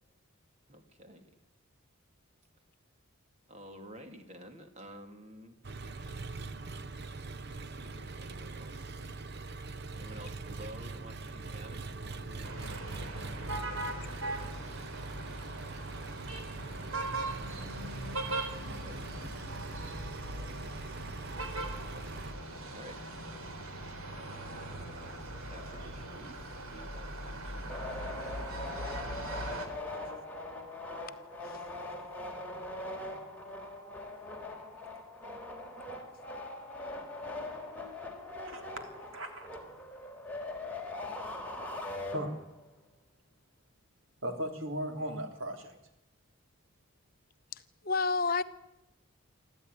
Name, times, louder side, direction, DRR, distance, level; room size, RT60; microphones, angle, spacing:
voice 1, 0.7-1.3 3.5-5.6 7.0-7.3 7.6-9.3 9.9-12.5 13.4-15.1 17.1-18.1 18.5-19.7 21.9-22.3 22.7-23.0 24.1-29.1, equal, 30° right, 6 dB, 2.7 m, -52 dB
Engine, 5.6-22.3, right 3 dB, 50° right, 0.8 m, -43 dB
sound 1, 12.4-29.7, right 2 dB, 90° right, 3.8 m, -40 dB
sound 2, 27.7-42.7, left 2 dB, 10° left, 3.6 m, -41 dB
voice 2, 39.1-39.5 42.1-42.5 44.2-45.8, equal, 70° right, 5 dB, 3.6 m, -37 dB
voice 3, 47.5-48.4, left 4 dB, 45° left, 11 dB, 0.9 m, -30 dB
25.0 x 14.0 x 9.9 m, 0.94 s
head